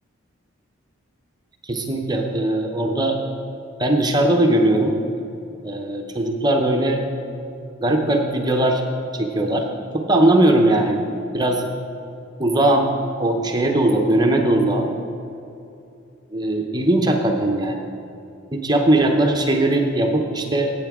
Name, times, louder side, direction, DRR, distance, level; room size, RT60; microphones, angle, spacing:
voice 1, 1.6-3.2 3.8-5.0 5.6-7.0 7.8-8.8 9.1-9.7 9.9-11.0 11.3-11.6 12.4-12.9 13.2-14.9 16.3-17.8 18.5-20.7, right 1 dB, 20° right, 2 dB, 0.7 m, -19 dB
15.0 x 8.5 x 3.6 m, 2.7 s
head